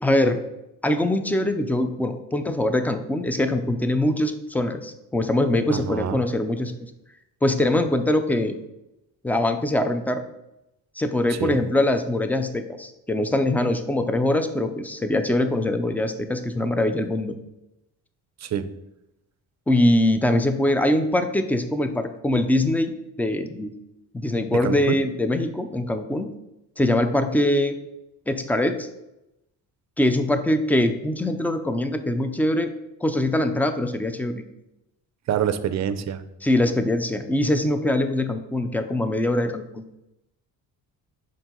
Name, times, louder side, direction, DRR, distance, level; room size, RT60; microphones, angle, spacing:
voice 1, 0.0-0.4 0.8-6.9 7.4-8.6 9.2-10.2 11.0-17.3 19.7-22.9 23.2-23.7 24.1-26.3 26.8-27.8 28.3-28.9 30.0-32.7 33.0-34.4 36.4-39.8, left 1 dB, 5° left, 8 dB, 0.5 m, -23 dB
voice 2, 5.7-6.2 11.3-11.6 18.4-18.7 24.5-25.0 35.3-36.2, right 9 dB, 50° right, 11 dB, 0.6 m, -26 dB
6.2 x 4.5 x 3.8 m, 0.90 s
cardioid pair, 100°, 36 cm